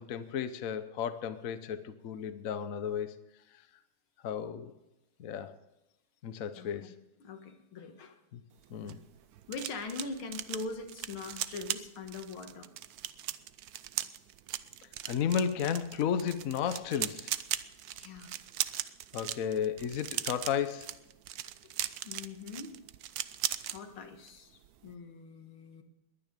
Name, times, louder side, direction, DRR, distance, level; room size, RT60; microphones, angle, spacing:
voice 1, 0.0-3.2 4.2-4.7 5.2-5.5 6.2-7.0 8.3-8.4 8.7-9.0 15.0-17.3 19.1-20.9, left 8 dB, 55° left, 1.0 m, -33 dB
voice 2, 6.5-6.9 7.2-8.2 9.5-12.7 17.9-18.3 21.6-21.7 22.0-22.8 23.7-25.8, left 3 dB, 80° left, 2.4 m, -42 dB
sound 1, 8.6-23.8 24.1-24.4 24.6-24.9, right 12 dB, 75° right, 0.8 m, -38 dB
21.0 x 9.5 x 5.2 m
omnidirectional pair, 2.3 m